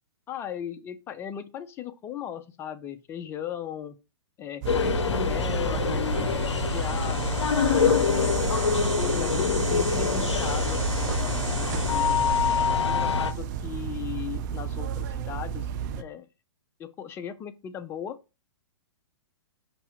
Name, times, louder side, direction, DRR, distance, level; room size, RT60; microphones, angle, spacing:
voice 1, 0.3-4.0 4.4-8.2 8.9-12.2 12.8-15.7 16.0-16.3 16.8-18.2, left 9 dB, 15° left, 0.4 m, -37 dB
sound 1, 4.6-16.0, right 9 dB, 40° right, 0.5 m, -32 dB
sound 2, 4.7-13.3, left 6 dB, 80° left, 0.5 m, -25 dB
5.3 x 2.3 x 4.2 m
hypercardioid pair, 120°, 15 cm